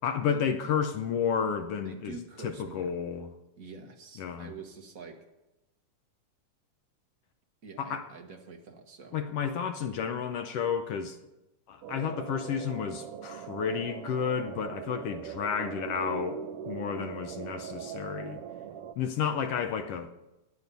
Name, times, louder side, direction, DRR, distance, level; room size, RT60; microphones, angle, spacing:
voice 1, 0.0-2.2 2.4-3.3 4.2-4.5 7.8-8.0 9.1-11.2 11.7-18.4 19.0-20.1, left 7 dB, 70° left, 1.5 m, -31 dB
voice 2, 1.8-2.9 3.6-5.2 7.6-9.2, right 4 dB, 55° right, 0.9 m, -46 dB
sound 1, 11.8-18.9, right 9 dB, 80° right, 1.3 m, -40 dB
15.5 x 9.9 x 5.4 m
omnidirectional pair, 3.3 m